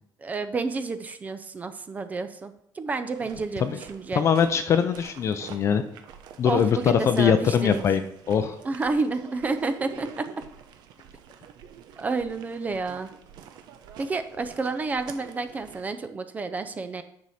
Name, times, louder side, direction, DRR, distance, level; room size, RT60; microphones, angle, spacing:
voice 1, 0.2-4.2 6.5-7.8 8.6-10.3 12.0-13.1 14.0-17.0, right 3 dB, 20° right, 10 dB, 0.5 m, -30 dB
sound 1, 3.1-15.9, right 8 dB, 70° right, 0.8 m, -47 dB
voice 2, 4.1-5.8 6.4-8.0 8.3-8.6, left 7 dB, 40° left, 8 dB, 0.5 m, -22 dB
9.4 x 6.3 x 4.2 m, 0.75 s
cardioid pair, 160°, 8 cm